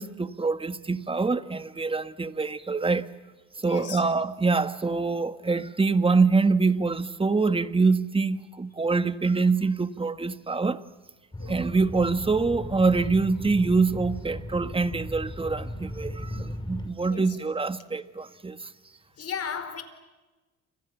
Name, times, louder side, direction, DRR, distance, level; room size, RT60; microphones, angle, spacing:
voice 1, 0.0-3.1 3.6-10.8 11.4-18.7, right 4 dB, 20° right, 1.5 m, -25 dB
voice 2, 3.6-4.0 11.4-11.6 17.1-17.2 19.2-19.8, left 7 dB, 55° left, 4.6 m, -34 dB
sound 1, 11.3-16.9, left 1 dB, 15° left, 5.8 m, -36 dB
30.0 x 26.5 x 7.2 m
cardioid pair, 90°, 30 cm